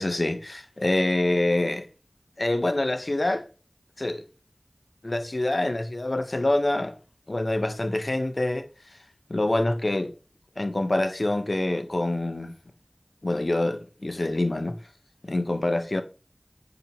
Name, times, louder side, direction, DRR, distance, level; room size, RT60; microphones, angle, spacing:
voice 1, 0.0-1.9 2.4-3.5 4.0-4.2 5.0-6.9 7.3-8.7 9.3-10.1 10.6-12.5 13.2-14.8 15.2-16.0, left 1 dB, 65° left, 0.5 m, -26 dB
5.4 x 2.9 x 3.4 m
wide cardioid pair, 40°, 0 cm